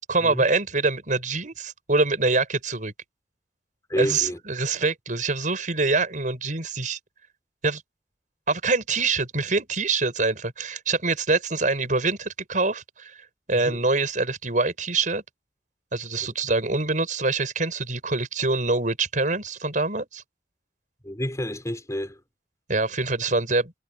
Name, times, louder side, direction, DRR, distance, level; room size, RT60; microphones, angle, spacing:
voice 1, 0.1-2.9 4.0-7.0 7.6-7.8 8.5-13.2 13.5-15.2 15.9-20.2 22.7-23.7, right 3 dB, 45° right, 5.8 m, -25 dB
voice 2, 3.9-4.4 13.5-13.8 16.2-16.3 21.0-22.2, equal, 20° left, 4.8 m, -29 dB
head